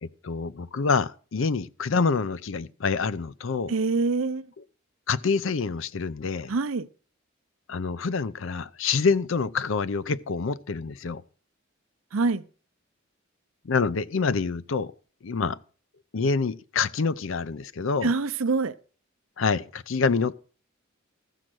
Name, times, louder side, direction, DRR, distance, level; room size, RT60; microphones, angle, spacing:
voice 1, 0.0-3.7 5.1-6.5 7.7-11.2 13.6-14.9 15.2-15.6 16.1-18.1 19.4-20.4, left 4 dB, 65° left, 0.5 m, -26 dB
voice 2, 3.7-4.5 6.5-6.9 12.1-12.4 18.0-18.7, right 3 dB, 85° right, 0.6 m, -25 dB
14.0 x 6.4 x 6.1 m
head